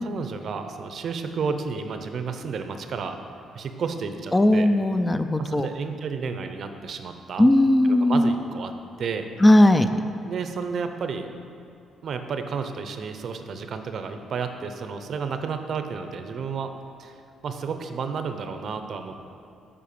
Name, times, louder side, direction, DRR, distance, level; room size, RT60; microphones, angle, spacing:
voice 1, 0.0-3.2 3.5-4.7 5.4-7.5 7.8-8.7 9.0-9.3 10.2-11.3 12.0-16.7 17.0-19.3, right 5 dB, 60° right, 7 dB, 0.6 m, -31 dB
voice 2, 4.3-5.7 7.4-8.3 9.4-9.9, left 1 dB, 15° left, 9 dB, 0.4 m, -17 dB
7.6 x 5.0 x 6.7 m, 2.6 s
cardioid pair, 90°, 0 cm